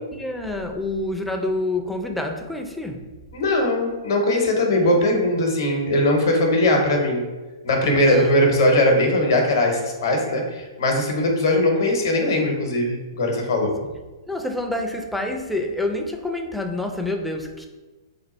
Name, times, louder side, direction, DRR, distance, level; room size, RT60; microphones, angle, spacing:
voice 1, 0.0-3.1 4.8-5.2 8.0-8.6 14.3-17.7, left 2 dB, ahead, 3 dB, 0.4 m, -28 dB
voice 2, 3.3-7.2 7.6-13.7, left 1 dB, 60° left, 2 dB, 0.8 m, -20 dB
3.3 x 2.3 x 4.1 m, 1.2 s
figure-of-eight pair, 115°, 2 cm